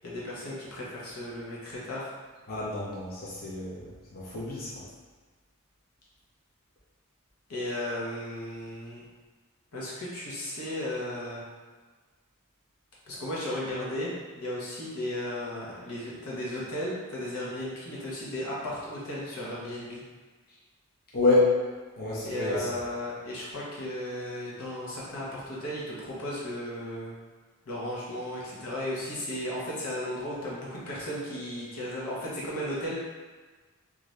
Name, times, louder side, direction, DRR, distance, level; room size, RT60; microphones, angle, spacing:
voice 1, 0.0-2.1 7.5-9.0 9.7-11.4 13.1-20.0 22.2-27.2 27.7-33.0, left 1 dB, 85° left, -6 dB, 0.9 m, -35 dB
voice 2, 2.5-4.8 21.1-21.6 22.0-22.8, left 3 dB, 45° left, -7 dB, 0.6 m, -27 dB
2.6 x 2.4 x 3.2 m, 1.4 s
head